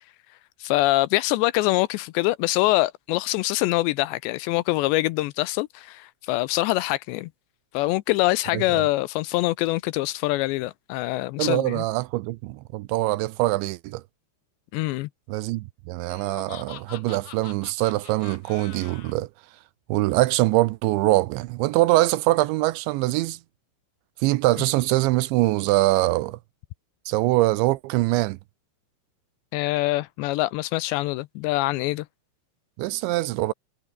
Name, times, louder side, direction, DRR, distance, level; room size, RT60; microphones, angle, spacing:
voice 1, 0.6-7.3 7.7-11.8 14.7-15.1 29.5-32.1, left 18 dB, 80° left, 2.6 m, -24 dB
voice 2, 11.4-14.0 15.3-19.3 19.9-23.4 24.2-26.4 27.1-28.4 32.8-33.5, right 19 dB, 80° right, 2.9 m, -23 dB
Laughter, 16.1-19.1, left 13 dB, 65° left, 3.0 m, -44 dB
omnidirectional pair, 5.5 m